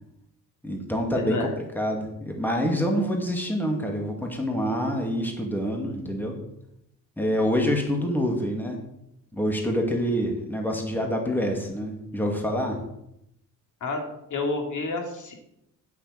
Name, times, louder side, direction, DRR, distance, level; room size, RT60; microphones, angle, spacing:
voice 1, 0.6-1.4 1.7-6.3 7.2-8.8 9.3-12.8, equal, 5° left, 1 dB, 2.2 m, -26 dB
voice 2, 1.2-1.6 13.8-15.3, left 3 dB, 60° left, 3 dB, 2.7 m, -29 dB
9.4 x 6.5 x 8.0 m, 0.80 s
cardioid pair, 110°, 34 cm